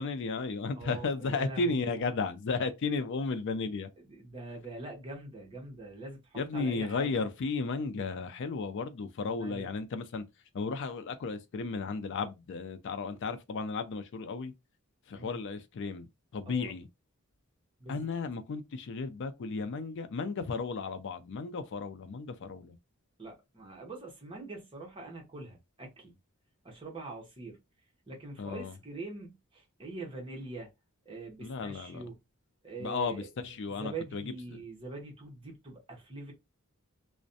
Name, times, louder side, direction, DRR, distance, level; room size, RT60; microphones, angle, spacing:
voice 1, 0.0-3.9 6.4-10.2 10.5-14.5 15.1-16.9 17.9-22.8 28.4-28.8 31.4-32.0 32.8-34.6, left 4 dB, 55° left, 0.4 m, -34 dB
voice 2, 0.7-2.0 4.0-7.1 9.3-9.7 15.1-15.4 16.5-16.7 17.8-18.1 23.2-26.1 26.6-27.6 28.1-30.7 31.0-32.1 32.6-36.3, right 3 dB, 25° right, 0.8 m, -44 dB
2.5 x 2.1 x 2.5 m
head